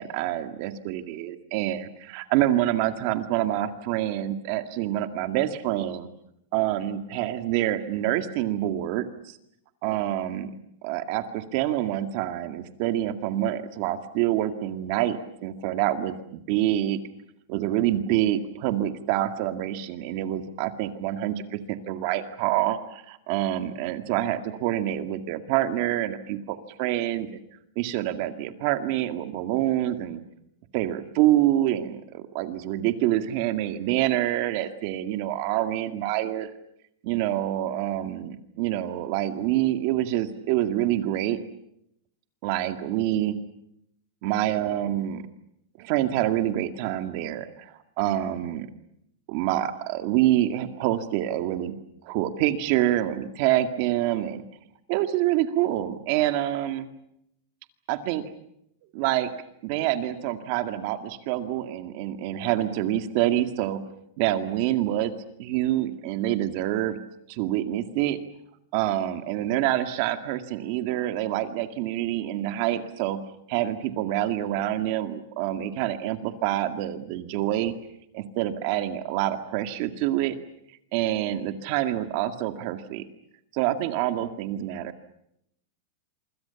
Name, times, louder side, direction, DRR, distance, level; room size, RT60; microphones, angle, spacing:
voice 1, 0.0-6.1 6.5-9.4 9.8-10.5 10.8-17.0 17.5-27.4 27.8-30.2 30.7-36.5 37.0-41.4 42.4-43.4 44.2-45.2 45.8-48.7 49.3-51.7 52.0-54.4 54.9-56.9 57.9-58.3 58.9-59.3 59.6-63.8 64.2-65.1 65.4-67.0 67.3-68.2 68.7-73.2 73.5-77.7 78.1-80.4 80.9-83.0 83.5-84.9, right 13 dB, 40° right, 9 dB, 2.1 m, -26 dB
27.0 x 25.5 x 7.1 m, 0.76 s
supercardioid pair, 175°, 0 cm